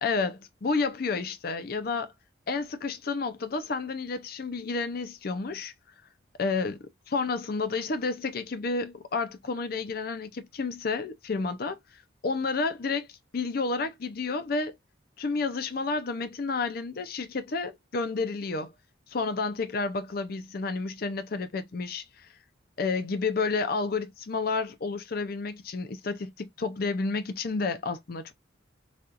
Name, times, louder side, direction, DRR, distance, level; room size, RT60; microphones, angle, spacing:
voice 1, 0.0-2.1 2.5-5.7 6.4-6.8 7.1-11.8 12.2-14.8 15.2-18.7 19.1-22.3 22.8-28.3, left 4 dB, 50° left, 0.5 m, -30 dB
4.2 x 2.3 x 2.4 m
head